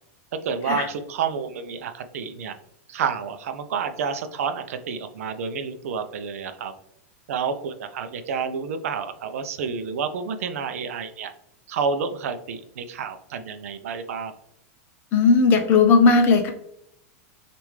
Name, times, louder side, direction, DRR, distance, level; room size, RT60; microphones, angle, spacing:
voice 1, 0.4-2.6 2.9-6.7 7.3-11.3 11.7-14.3, right 6 dB, 75° right, 9 dB, 0.5 m, -29 dB
voice 2, 15.1-16.5, left 4 dB, 25° left, 5 dB, 0.6 m, -16 dB
6.4 x 2.5 x 3.2 m, 0.78 s
supercardioid pair, 170°, 8 cm